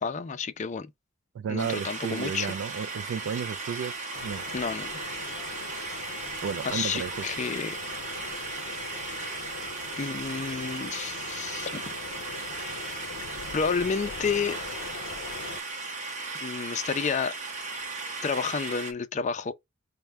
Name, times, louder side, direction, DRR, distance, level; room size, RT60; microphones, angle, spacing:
voice 1, 0.0-0.9 1.5-2.6 4.5-4.9 6.6-7.8 10.0-12.0 12.9-13.0 13.5-14.6 16.4-17.3 18.2-19.5, left 5 dB, 35° left, 0.4 m, -30 dB
voice 2, 1.3-3.9 4.2-4.4 6.4-7.3, right 7 dB, 75° right, 0.3 m, -33 dB
sound 1, 1.6-18.9, right 3 dB, 40° right, 0.8 m, -36 dB
sound 2, 4.1-15.6, left 5 dB, 90° left, 0.5 m, -42 dB
4.4 x 2.1 x 3.2 m
head